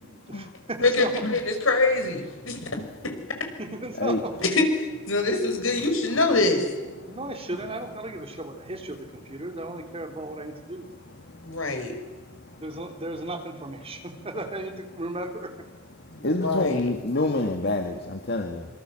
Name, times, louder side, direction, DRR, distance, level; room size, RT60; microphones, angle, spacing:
voice 1, 0.0-1.1 3.6-4.3 7.0-10.9 12.6-15.5, right 2 dB, 30° right, 4 dB, 3.3 m, -35 dB
voice 2, 0.8-2.6 4.5-4.7 5.0-6.6 11.4-11.9 16.1-16.9, left 2 dB, 80° left, 5 dB, 5.5 m, -24 dB
voice 3, 16.2-18.7, left 2 dB, 55° left, 4 dB, 2.0 m, -27 dB
26.5 x 25.5 x 7.7 m, 1.2 s
head